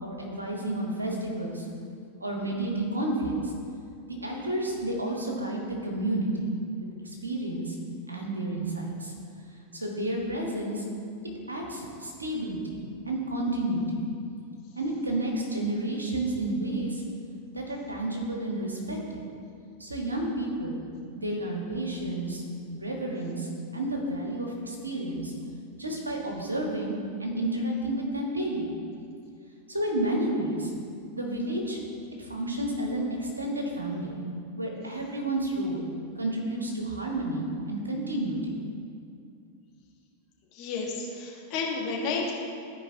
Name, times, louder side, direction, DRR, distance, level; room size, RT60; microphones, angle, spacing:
voice 1, 0.0-1.7 2.2-3.5 4.1-6.5 6.8-7.8 8.1-9.1 9.7-10.8 11.5-14.0 14.7-17.0 17.5-19.2 19.8-20.8 21.1-22.4 22.7-25.3 25.8-26.9 27.2-28.7 29.7-30.7 31.1-31.8 32.2-34.2 34.6-35.8 36.2-38.6, right 1 dB, 80° right, 0 dB, 1.4 m, -31 dB
voice 2, 40.5-42.3, left 4 dB, 45° left, -2 dB, 1.5 m, -31 dB
13.5 x 5.0 x 2.9 m, 2.5 s
figure-of-eight pair, 90°, 0 cm